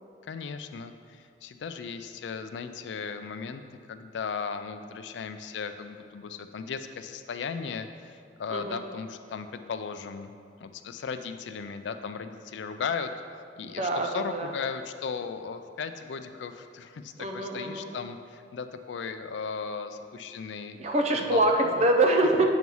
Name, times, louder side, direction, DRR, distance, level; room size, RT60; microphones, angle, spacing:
voice 1, 0.3-3.6 3.9-10.3 10.6-13.1 13.6-20.8 21.2-21.9, left 5 dB, 75° left, 9 dB, 0.4 m, -36 dB
voice 2, 8.5-8.8 13.6-14.5 17.2-17.9 20.8-22.5, right 1 dB, 35° right, 3 dB, 0.5 m, -25 dB
8.0 x 3.1 x 5.4 m, 2.2 s
head